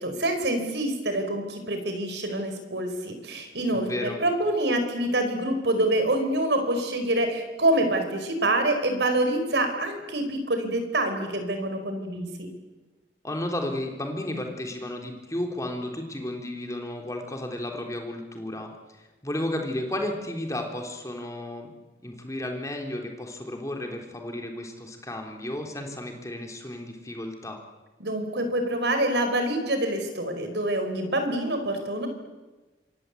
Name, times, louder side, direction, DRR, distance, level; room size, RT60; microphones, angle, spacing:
voice 1, 0.0-12.5 28.0-32.1, right 1 dB, 70° right, 7 dB, 4.9 m, -26 dB
voice 2, 3.7-4.2 13.2-18.7 19.2-21.7 22.0-27.6, left 1 dB, 20° left, 2 dB, 3.5 m, -33 dB
27.0 x 23.5 x 8.4 m, 1.2 s
head